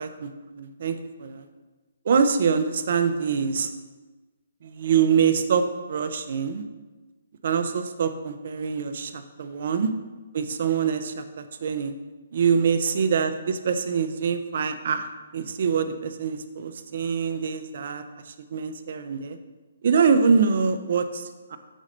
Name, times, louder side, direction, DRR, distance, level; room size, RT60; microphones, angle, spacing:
voice 1, 0.0-1.4 2.1-3.7 4.6-6.6 7.4-9.9 10.3-11.9 12.3-15.1 15.3-18.0 18.5-19.4 19.8-21.6, right 6 dB, 50° right, 8 dB, 0.5 m, -24 dB
6.3 x 4.2 x 5.1 m, 1.2 s
hypercardioid pair, 165°, 0 cm